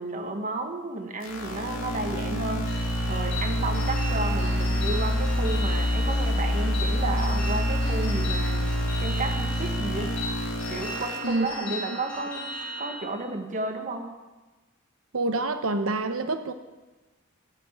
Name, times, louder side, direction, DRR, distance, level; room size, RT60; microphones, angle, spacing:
voice 1, 0.0-8.6 9.0-10.2 10.7-12.5 12.8-14.1, right 2 dB, 35° right, 1.4 m, -32 dB
sound 1, 1.2-11.2, equal, 65° left, 2.3 m, -27 dB
sound 2, 2.7-13.0, equal, 5° left, 4.5 m, -37 dB
voice 2, 15.1-16.5, right 2 dB, 70° right, 0.9 m, -27 dB
12.5 x 6.0 x 9.0 m
head